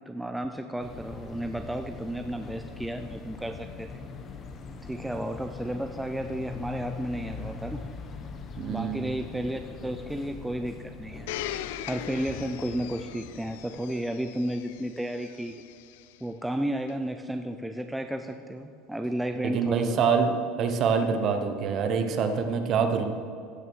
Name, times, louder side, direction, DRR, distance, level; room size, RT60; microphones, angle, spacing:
voice 1, 0.1-4.0 4.8-7.8 8.7-11.4 11.9-15.6 16.2-20.1, right 1 dB, 5° right, 6 dB, 0.4 m, -33 dB
sound 1, 0.8-13.7, left 4 dB, 30° left, 1.1 m, -42 dB
voice 2, 8.6-9.1 19.4-23.1, right 6 dB, 40° right, 7 dB, 1.0 m, -25 dB
Domestic sounds home sounds, 11.3-16.1 16.9-17.0, left 12 dB, 85° left, 0.5 m, -40 dB
15.5 x 6.2 x 6.2 m, 2.3 s
cardioid pair, 145°, 0 cm